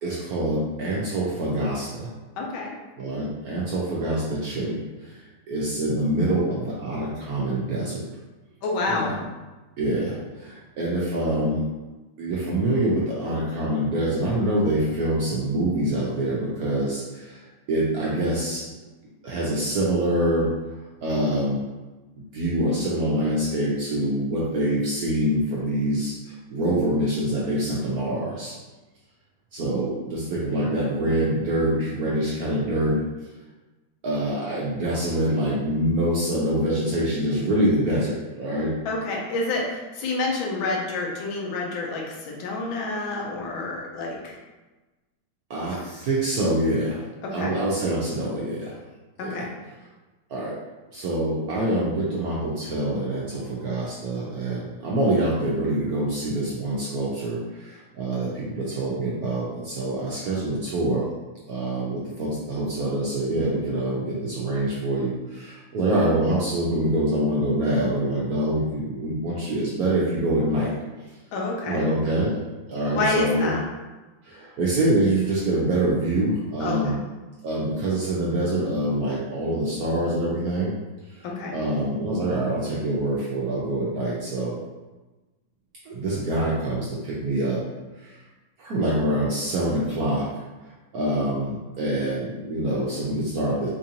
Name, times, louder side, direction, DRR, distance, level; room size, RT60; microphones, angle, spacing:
voice 1, 0.0-2.1 3.0-8.0 8.8-9.2 9.8-11.6 12.2-18.6 19.2-20.5 21.0-21.6 22.3-28.5 29.5-33.3 34.0-38.7 45.5-47.0 47.3-48.7 49.2-49.5 50.3-50.5 50.9-61.1 61.5-70.7 71.6-73.5 74.2-77.0 77.4-80.7 81.1-81.3 81.5-84.6 85.8-87.6 88.0-88.2 88.6-90.3 90.9-93.7, right 1 dB, 75° right, -5 dB, 0.8 m, -25 dB
voice 2, 2.4-2.7 8.6-9.1 38.8-44.4 47.2-47.5 49.2-49.5 66.0-66.2 71.3-71.8 72.9-73.6 76.6-77.0 81.2-81.5, left 3 dB, 75° left, -2 dB, 1.5 m, -28 dB
4.5 x 2.5 x 2.8 m, 1.2 s
omnidirectional pair, 2.3 m